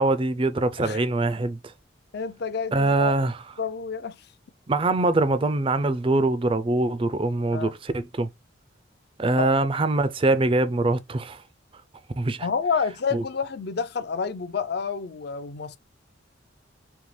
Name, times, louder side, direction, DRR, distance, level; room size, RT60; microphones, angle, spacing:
voice 1, 0.0-1.7 2.7-3.4 4.7-8.3 9.2-11.4 12.2-12.5 13.1-13.2, right 2 dB, 25° right, 0.4 m, -23 dB
voice 2, 2.1-3.1 3.6-4.3 7.5-7.7 9.4-9.5 12.4-15.8, left 5 dB, 55° left, 0.5 m, -29 dB
5.3 x 2.8 x 3.2 m
head